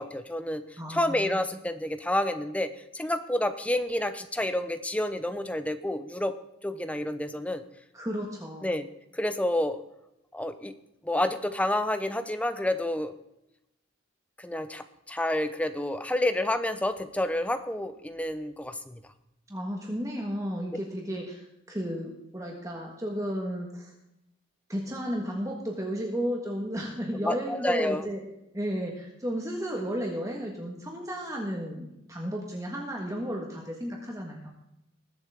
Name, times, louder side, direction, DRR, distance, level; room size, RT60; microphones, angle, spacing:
voice 1, 0.0-6.3 6.6-7.6 8.6-8.9 9.1-9.8 10.3-10.7 11.0-13.1 14.4-19.0 27.2-28.0, left 1 dB, 5° left, 10 dB, 0.7 m, -29 dB
voice 2, 0.8-1.4 7.9-8.7 19.5-23.9 24.7-28.2 28.5-34.5, equal, 15° right, 0 dB, 1.5 m, -33 dB
20.5 x 7.9 x 3.6 m, 0.87 s
head